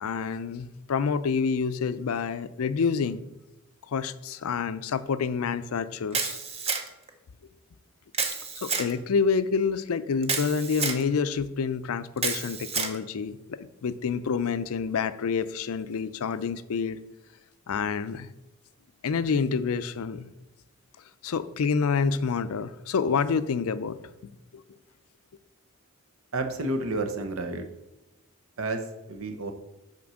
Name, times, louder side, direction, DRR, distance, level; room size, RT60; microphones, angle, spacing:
voice 1, 0.0-3.2 3.9-6.4 8.6-17.0 17.7-18.3 19.0-20.3 21.2-24.0 24.5-24.6, left 5 dB, 80° left, 14 dB, 0.4 m, -28 dB
Camera, 6.1-7.1 8.1-8.9 10.2-11.0 12.2-13.0, right 5 dB, 25° right, 0.6 m, -29 dB
voice 2, 26.3-27.7 28.6-29.5, right 2 dB, 75° right, 6 dB, 0.9 m, -30 dB
5.9 x 4.4 x 6.3 m, 0.97 s
head